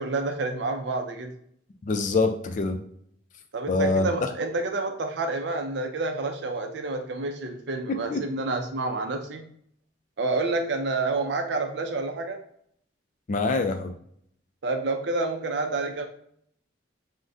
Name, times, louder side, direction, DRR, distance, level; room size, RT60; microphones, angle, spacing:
voice 1, 0.0-1.4 3.5-9.5 10.2-12.4 14.6-16.0, right 3 dB, 65° right, 5 dB, 0.5 m, -29 dB
voice 2, 1.8-2.8 3.7-4.3 7.9-8.2 13.3-13.9, left 3 dB, 40° left, 6 dB, 0.3 m, -25 dB
3.5 x 2.1 x 2.5 m, 0.66 s
head